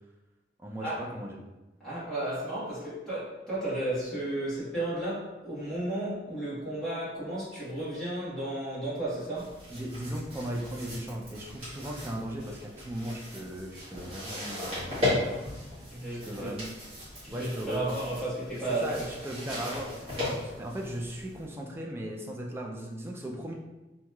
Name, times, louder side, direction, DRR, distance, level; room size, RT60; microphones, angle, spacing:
voice 1, 0.6-1.4 9.7-14.9 16.1-16.7 17.3-18.0 18.7-23.5, right 1 dB, 15° right, -1 dB, 0.3 m, -37 dB
voice 2, 1.8-9.6 15.9-16.5 17.2-19.1, right 1 dB, 5° left, -12 dB, 1.2 m, -33 dB
sound 1, 9.3-21.5, left 2 dB, 30° right, 1.3 m, -37 dB
2.9 x 2.7 x 2.2 m, 1.1 s
head